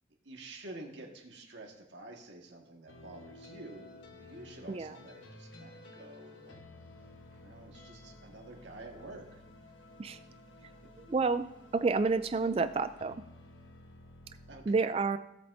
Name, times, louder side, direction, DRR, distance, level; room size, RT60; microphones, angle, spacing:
voice 1, 0.2-6.6 7.3-9.4 10.0-10.1 10.8-10.9 14.5-14.9, right 2 dB, 70° right, 1 dB, 1.7 m, -49 dB
sound 1, 2.9-14.7, left 2 dB, 80° left, 1.2 m, -53 dB
voice 2, 11.1-11.5 11.7-13.2 14.7-15.2, right 4 dB, 30° right, 11 dB, 0.3 m, -29 dB
16.5 x 7.8 x 2.7 m, 0.84 s
head